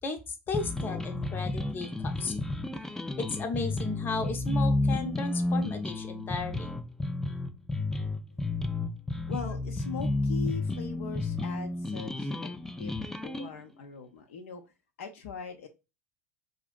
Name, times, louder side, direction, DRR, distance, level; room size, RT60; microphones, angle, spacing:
voice 1, 0.0-2.5 3.2-6.7, left 3 dB, 25° left, 7 dB, 0.8 m, -35 dB
sound 1, 0.5-13.5, left 2 dB, 5° left, 0.3 m, -31 dB
voice 2, 9.3-12.9 13.2-14.6 15.0-15.7, left 6 dB, 60° left, 4 dB, 0.6 m, -41 dB
4.8 x 2.5 x 2.3 m, 0.27 s
figure-of-eight pair, 75°, 7 cm